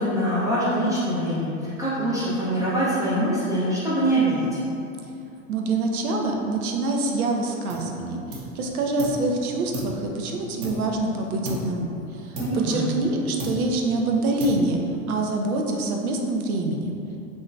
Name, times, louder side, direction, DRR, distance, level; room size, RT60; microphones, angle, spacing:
voice 1, 0.0-4.6 12.4-12.8, right 1 dB, 10° right, -10 dB, 0.4 m, -24 dB
voice 2, 5.5-14.8 15.1-17.0, right 2 dB, 85° right, 1 dB, 0.6 m, -26 dB
sound 1, 7.7-8.0 8.3-9.3 9.7-11.1 11.4-11.9 12.4-13.1 13.4-13.9 14.4-15.0, right 1 dB, 40° right, 0.7 m, -34 dB
3.5 x 2.6 x 2.2 m, 2.7 s
hypercardioid pair, 105°, 42 cm